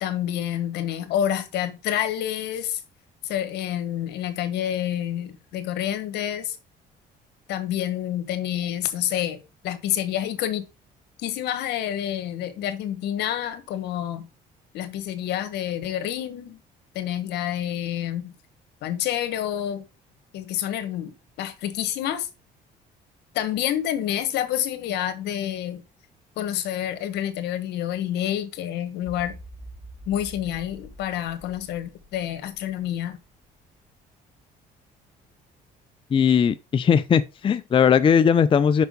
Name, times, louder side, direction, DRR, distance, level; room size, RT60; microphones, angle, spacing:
voice 1, 0.0-2.8 3.2-6.6 7.5-10.6 11.2-14.3 14.7-16.6 16.9-18.3 18.8-19.8 20.3-22.3 23.3-25.8 26.4-29.4 30.1-33.2, left 11 dB, 80° left, 1.4 m, -28 dB
sound 1, 29.0-33.1, equal, 5° right, 3.8 m, -45 dB
voice 2, 36.1-38.8, left 7 dB, 30° left, 0.5 m, -19 dB
6.1 x 5.7 x 5.3 m
cardioid pair, 110°, 17 cm